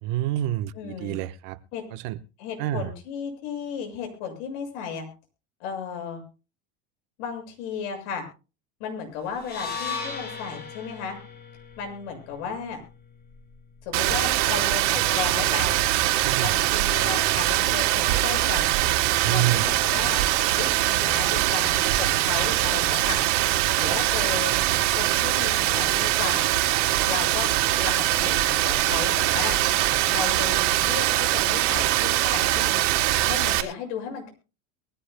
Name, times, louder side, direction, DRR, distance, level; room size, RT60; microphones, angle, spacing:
voice 1, 0.0-1.6 1.9-2.2 2.6-2.9 16.2-16.5 19.2-19.7 23.8-24.0, right 14 dB, 60° right, 12 dB, 1.2 m, -28 dB
voice 2, 0.8-1.2 1.7-1.8 2.4-5.1 5.6-6.2 7.2-8.2 8.8-11.2 11.8-12.8 13.9-15.8 16.4-18.7 19.3-20.2 20.5-23.2 23.8-24.5 25.0-26.5 27.0-29.6 30.1-32.8 33.2-34.3, left 6 dB, 70° left, 5 dB, 7.0 m, -34 dB
sound 1, 9.4-13.6, left 5 dB, 25° left, 5.4 m, -37 dB
Rain, 13.9-33.6, right 15 dB, 80° right, 3.3 m, -22 dB
23.0 x 15.5 x 2.2 m, 0.33 s
supercardioid pair, 130°, 36 cm